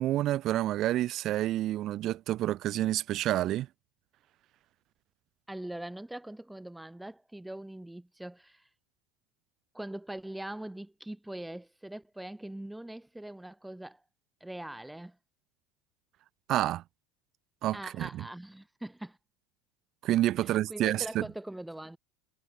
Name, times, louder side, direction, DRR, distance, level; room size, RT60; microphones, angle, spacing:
voice 1, 0.0-3.7 16.5-16.8 17.6-18.3 20.0-21.3, right 14 dB, 50° right, 0.7 m, -29 dB
voice 2, 5.5-8.6 9.7-14.0 14.4-15.2 17.7-19.2 20.4-22.0, right 1 dB, 5° right, 2.0 m, -42 dB
supercardioid pair, 105°, 0 cm